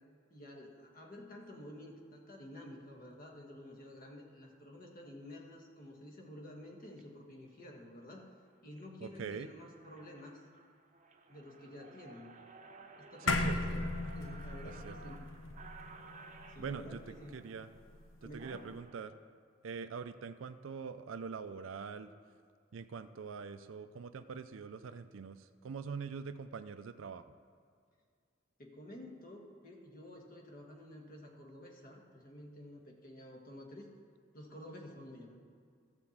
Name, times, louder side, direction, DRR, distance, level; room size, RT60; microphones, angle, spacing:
voice 1, 0.3-8.3 8.6-10.4 11.3-12.3 13.0-13.9 14.1-15.2 16.5-17.4 18.2-18.7 28.6-33.9 34.3-35.4, left 1 dB, 45° left, 1 dB, 1.5 m, -51 dB
sound 1, 6.8-7.0 7.7-7.9 8.4-8.8 9.3-9.4 9.6-19.0, right 3 dB, 40° right, 0.8 m, -56 dB
voice 2, 9.0-9.5 13.2-13.7 14.8-14.9 16.6-17.7 18.2-19.1 19.6-22.1 22.7-27.2, right 5 dB, 80° right, 10 dB, 0.4 m, -43 dB
sound 2, 13.3-17.9, left 2 dB, 85° left, 0.7 m, -37 dB
13.0 x 4.4 x 7.2 m, 2.2 s
head